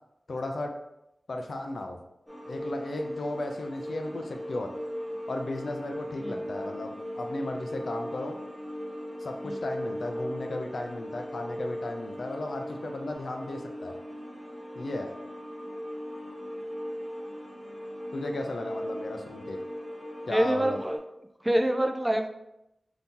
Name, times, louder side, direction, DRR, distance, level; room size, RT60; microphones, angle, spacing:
voice 1, 0.3-0.7 1.3-2.0 2.5-4.7 5.3-8.4 9.2-14.0 14.8-15.1 18.1-19.6 20.3-20.8, left 2 dB, 70° left, 3 dB, 0.4 m, -35 dB
sound 1, 2.3-21.0, equal, 5° left, 1.0 m, -38 dB
voice 2, 20.3-21.0 21.4-22.3, right 1 dB, 10° right, 5 dB, 0.3 m, -26 dB
2.8 x 2.7 x 3.6 m, 0.86 s
wide cardioid pair, 85°, 0 cm